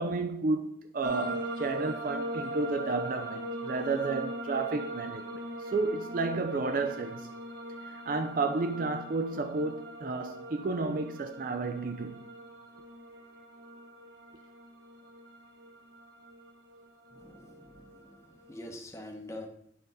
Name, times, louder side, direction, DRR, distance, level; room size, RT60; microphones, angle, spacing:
voice 1, 0.0-7.3 7.9-12.3, right 3 dB, 45° right, 0.4 m, -32 dB
sound 1, 1.0-18.8, right 1 dB, 65° right, 1.0 m, -41 dB
voice 2, 17.1-19.5, left 1 dB, 15° left, 0.8 m, -45 dB
9.2 x 5.0 x 4.0 m
head